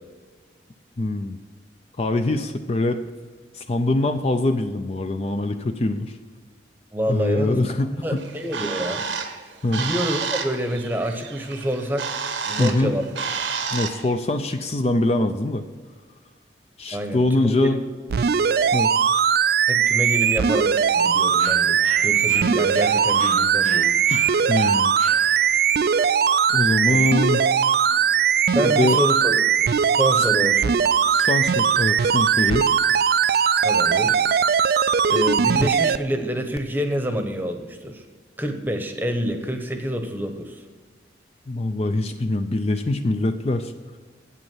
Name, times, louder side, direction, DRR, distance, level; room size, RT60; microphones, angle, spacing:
voice 1, 1.0-1.4 2.0-3.0 3.5-6.1 7.1-8.2 9.6-9.8 12.6-13.0 13.7-15.6 16.8-17.8 18.7-18.9 24.1-24.9 26.5-27.4 28.6-29.0 31.1-32.7 41.5-43.7, left 2 dB, 35° left, 7 dB, 0.4 m, -23 dB
voice 2, 6.9-7.6 7.9-9.0 9.6-12.1 12.5-13.2 16.9-17.8 19.7-21.8 22.0-23.9 26.9-27.1 28.5-29.4 29.9-30.8 33.6-34.2 35.1-38.0 38.4-40.6, equal, 10° right, 5 dB, 0.9 m, -27 dB
Bird, 8.2-14.1, right 6 dB, 90° right, 1.0 m, -30 dB
sound 1, 18.1-36.0 36.6-36.7, right 7 dB, 55° right, 0.3 m, -20 dB
sound 2, 21.4-25.7, right 4 dB, 40° right, 0.8 m, -39 dB
8.3 x 8.2 x 7.4 m, 1.5 s
head